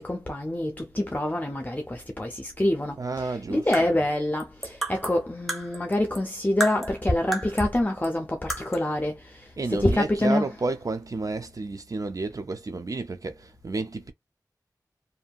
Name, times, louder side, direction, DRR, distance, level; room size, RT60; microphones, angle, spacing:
voice 1, 0.0-10.5, left 1 dB, 25° left, 0.6 m, -26 dB
voice 2, 3.0-3.7 9.6-14.1, right 3 dB, 55° right, 0.4 m, -31 dB
sound 1, 3.5-6.3 6.6-7.8 8.0-8.1 8.5-8.9, right 1 dB, ahead, 1.1 m, -33 dB
2.6 x 2.6 x 2.4 m
wide cardioid pair, 55°, 7 cm